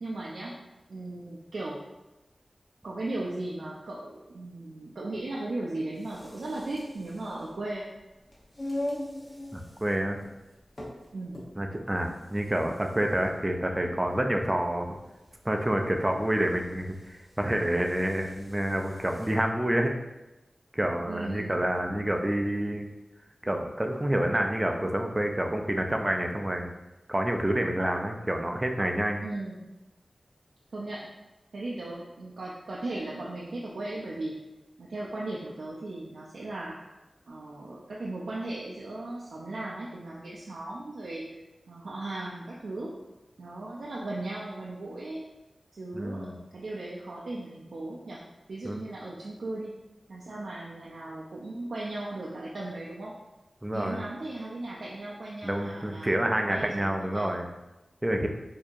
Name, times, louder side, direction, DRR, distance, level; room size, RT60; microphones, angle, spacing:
voice 1, 0.0-0.5 0.9-1.8 2.8-7.9 11.1-11.4 21.1-21.6 29.2-29.7 30.7-31.0 31.5-34.3 34.8-36.8 37.3-41.2 41.7-42.9 43.4-45.2 45.7-48.2 48.5-49.7 50.1-53.1 53.7-57.3, right 2 dB, 90° right, -5 dB, 0.4 m, -37 dB
sound 1, 5.9-19.5, left 1 dB, 40° left, 0.7 m, -43 dB
voice 2, 9.5-10.2 11.6-14.9 15.4-19.9 20.7-22.9 23.4-26.7 27.1-29.3 45.9-46.4 48.6-48.8 53.6-54.0 55.4-57.5 58.0-58.3, right 1 dB, 20° right, 3 dB, 0.4 m, -28 dB
4.4 x 2.7 x 2.4 m, 1.0 s
wide cardioid pair, 95°, 0 cm